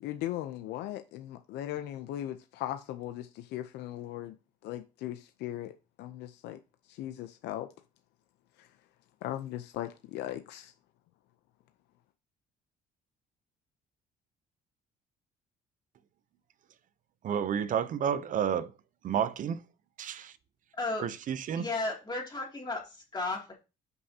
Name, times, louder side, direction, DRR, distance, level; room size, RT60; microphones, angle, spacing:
voice 1, 0.0-4.3 4.6-5.7 6.0-6.6 6.9-7.7 8.6-8.7 9.2-10.7, left 13 dB, 85° left, 0.6 m, -38 dB
voice 2, 17.2-18.7 19.0-19.6 20.0-20.4 21.0-21.7, right 8 dB, 50° right, 0.6 m, -30 dB
voice 3, 21.6-23.5, left 2 dB, 25° left, 2.6 m, -34 dB
11.0 x 5.6 x 2.8 m
cardioid pair, 110°, 17 cm